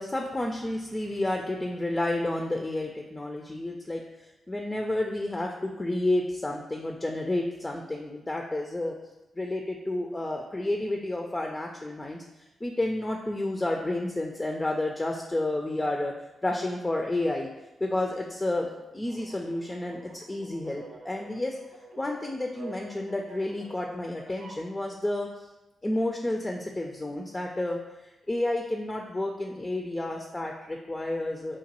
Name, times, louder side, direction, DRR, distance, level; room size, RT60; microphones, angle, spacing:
voice 1, 0.0-9.0 9.4-12.2 12.6-16.1 16.4-17.5 17.8-18.7 18.9-21.6 22.0-25.3 25.8-31.6, left 1 dB, 25° left, 1 dB, 0.4 m, -30 dB
sound 1, 19.0-24.7, right 3 dB, 65° right, 0.4 m, -48 dB
2.9 x 2.1 x 2.9 m, 1.0 s
supercardioid pair, 40°, 0 cm